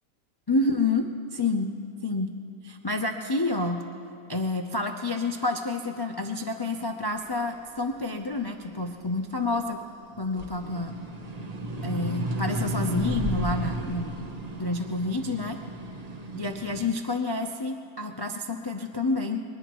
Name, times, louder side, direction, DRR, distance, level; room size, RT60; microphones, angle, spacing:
voice 1, 0.5-1.7 2.0-2.3 2.6-3.8 4.3-9.8 10.2-11.0 11.8-14.3 14.6-15.6 16.3-19.4, left 2 dB, 40° left, 3 dB, 0.3 m, -29 dB
sound 1, 7.3-9.8 10.2-16.9, right 1 dB, 35° right, 0.8 m, -33 dB
22.0 x 20.0 x 3.1 m, 2.7 s
omnidirectional pair, 1.5 m